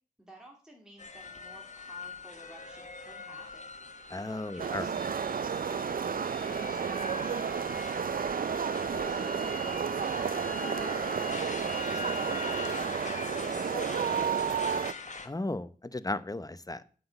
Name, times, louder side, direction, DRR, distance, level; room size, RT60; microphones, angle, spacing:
voice 1, 0.2-3.7 4.3-8.0, right 1 dB, 5° right, -1 dB, 2.6 m, -54 dB
sound 1, 1.0-15.3, left 3 dB, 50° left, 1.4 m, -43 dB
sound 2, 3.2-12.9, left 3 dB, 90° left, 1.3 m, -46 dB
voice 2, 4.1-4.9 15.3-16.8, left 2 dB, 25° left, 14 dB, 0.8 m, -35 dB
sound 3, 4.6-14.9, right 7 dB, 65° right, 0.4 m, -32 dB
7.8 x 5.9 x 7.9 m, 0.40 s
cardioid pair, 40°, 16 cm